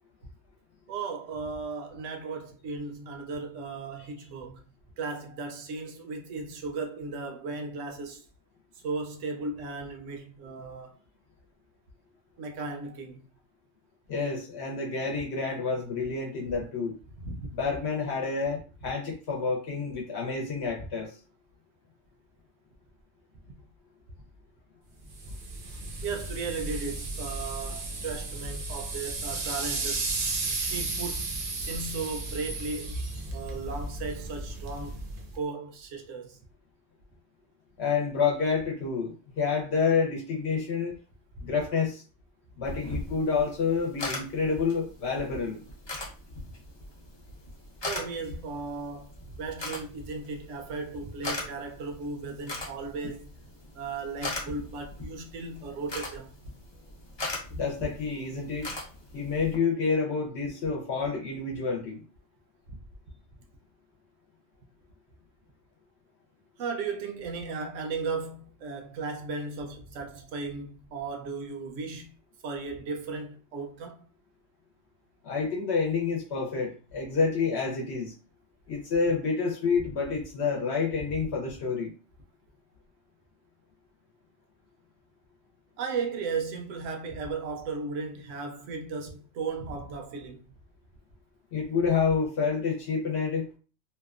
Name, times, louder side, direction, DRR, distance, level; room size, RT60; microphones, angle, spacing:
voice 1, 0.9-4.6 5.0-8.2 8.8-11.0 12.4-13.2 17.2-17.5 20.8-20.9 23.5-23.6 25.2-25.3 26.0-30.1 30.4-33.0 33.3-35.0 35.3-36.4 41.4-41.5 46.4-46.5 47.8-53.3 53.7-56.4 62.7-62.8 66.6-72.1 72.4-74.0 81.2-81.3 85.8-90.4, right 4 dB, 85° right, 0.9 m, -36 dB
voice 2, 14.1-16.9 17.5-21.2 37.8-40.9 41.4-42.0 42.6-45.6 57.6-58.7 59.1-62.0 75.2-78.1 78.7-81.9 91.5-93.5, left 5 dB, 65° left, 0.8 m, -28 dB
sound 1, 25.1-35.4, right 3 dB, 55° right, 0.7 m, -34 dB
sound 2, 42.6-59.6, left 2 dB, 35° left, 0.4 m, -40 dB
2.8 x 2.1 x 2.3 m
omnidirectional pair, 1.3 m